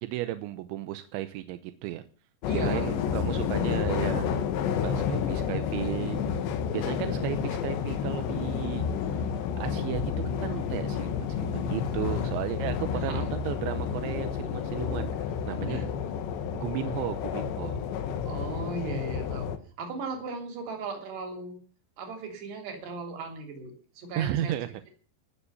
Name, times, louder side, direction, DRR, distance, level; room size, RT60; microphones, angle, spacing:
voice 1, 0.0-2.0 2.5-4.4 4.8-9.2 9.6-10.1 10.4-15.9 16.5-17.8 24.2-24.7, right 14 dB, 90° right, 10 dB, 3.2 m, -34 dB
sound 1, 2.4-19.6, left 7 dB, 80° left, 3.5 m, -30 dB
voice 2, 2.5-2.9 12.9-13.2 15.7-15.8 18.3-19.5 19.8-21.6 22.0-24.6, right 3 dB, 65° right, 4 dB, 5.0 m, -37 dB
19.5 x 7.1 x 7.0 m, 0.40 s
omnidirectional pair, 5.2 m